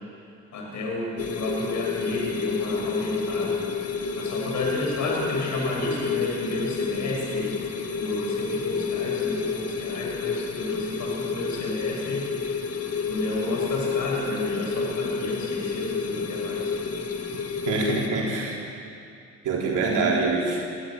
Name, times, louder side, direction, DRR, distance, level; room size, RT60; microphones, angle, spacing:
voice 1, 0.5-12.3 12.5-16.8, left 1 dB, 75° left, -1 dB, 6.2 m, -32 dB
sound 1, 1.2-18.1, left 5 dB, 50° left, 2.0 m, -29 dB
voice 2, 17.7-18.6 19.4-20.6, right 3 dB, 80° right, -3 dB, 3.9 m, -24 dB
21.5 x 14.0 x 9.0 m, 2.6 s
cardioid pair, 90°, 30 cm